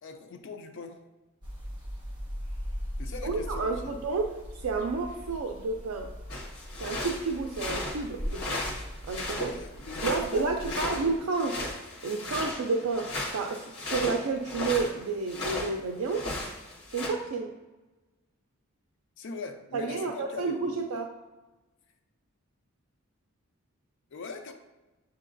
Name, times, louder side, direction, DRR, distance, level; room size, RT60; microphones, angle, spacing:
voice 1, 0.0-1.0 3.0-3.9 9.4-11.0 19.2-20.7 24.1-24.5, left 4 dB, 60° left, 5 dB, 0.5 m, -41 dB
sound 1, 1.4-11.2, equal, 20° right, 1.0 m, -40 dB
voice 2, 3.2-6.1 6.8-8.6 9.0-9.6 10.0-11.8 12.0-16.3 16.9-17.5 19.7-21.1, right 4 dB, 75° right, 2 dB, 0.4 m, -31 dB
sound 2, 6.3-15.8 16.0-17.1, left 2 dB, 85° left, 1.2 m, -36 dB
7.5 x 2.8 x 2.5 m, 1.1 s
head